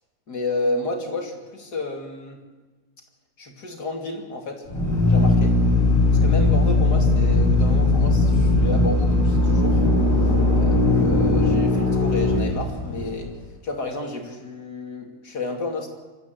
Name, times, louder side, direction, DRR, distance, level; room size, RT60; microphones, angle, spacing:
voice 1, 0.3-2.4 3.4-4.6 5.1-5.5 6.2-9.8 10.5-13.3 13.6-15.9, left 2 dB, 65° left, 2 dB, 3.3 m, -31 dB
Drill, 4.6-13.3, left 2 dB, 45° left, 5.4 m, -19 dB
25.5 x 13.5 x 7.9 m, 1.3 s
omnidirectional pair, 1.9 m